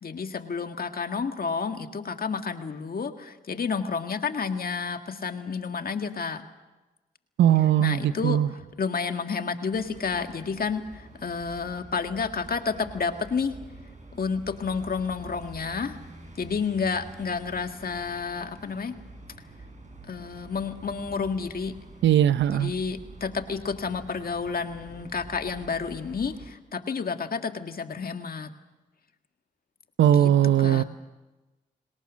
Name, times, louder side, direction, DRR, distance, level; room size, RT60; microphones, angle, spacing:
voice 1, 0.0-6.4 7.8-13.5 14.1-16.0 16.4-18.9 20.1-21.7 22.5-28.5 30.1-30.3 30.6-30.8, left 5 dB, 50° left, 7 dB, 1.9 m, -30 dB
voice 2, 7.4-8.5 22.0-22.7 30.0-30.8, right 11 dB, 75° right, 15 dB, 0.8 m, -20 dB
sound 1, 9.7-26.5, right 2 dB, 40° right, 6.9 m, -47 dB
29.5 x 18.5 x 6.4 m, 1.1 s
supercardioid pair, 45°, 19 cm